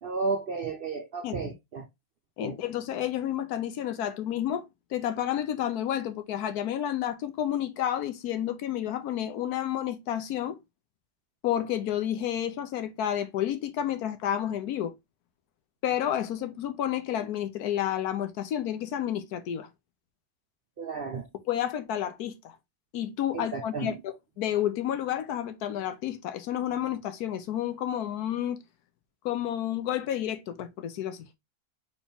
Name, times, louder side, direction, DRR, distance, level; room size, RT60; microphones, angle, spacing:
voice 1, 0.0-1.9 2.4-2.6 20.8-21.3 23.3-24.0, right 4 dB, 60° right, 0.6 m, -33 dB
voice 2, 2.4-4.7 4.9-10.6 11.4-14.9 15.8-19.7 21.5-22.5 22.9-28.6 29.2-31.3, left 11 dB, 75° left, 1.2 m, -30 dB
4.4 x 3.5 x 3.4 m
omnidirectional pair, 1.7 m